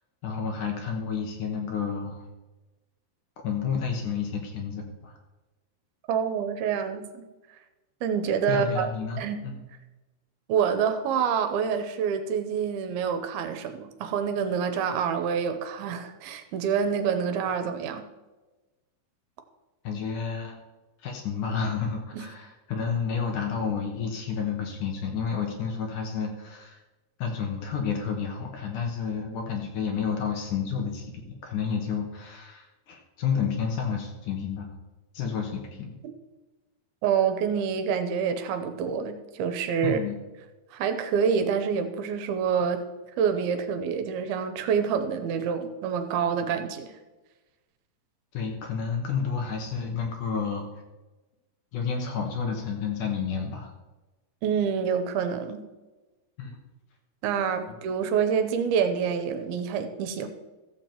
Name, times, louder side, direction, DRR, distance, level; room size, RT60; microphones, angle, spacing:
voice 1, 0.2-2.3 3.4-5.1 8.5-9.6 19.8-20.6 21.0-26.8 27.2-34.7 35.1-35.9 39.8-40.2 48.3-50.7 51.7-53.7 56.4-56.5, left 6 dB, 65° left, 2 dB, 2.3 m, -30 dB
voice 2, 6.1-7.2 8.0-8.9 9.2-9.4 10.5-18.0 22.1-22.3 37.0-40.0 40.7-42.8 43.2-46.9 54.4-55.6 57.2-60.3, right 7 dB, 80° right, 8 dB, 2.6 m, -27 dB
14.5 x 7.3 x 4.5 m, 1.1 s
omnidirectional pair, 4.5 m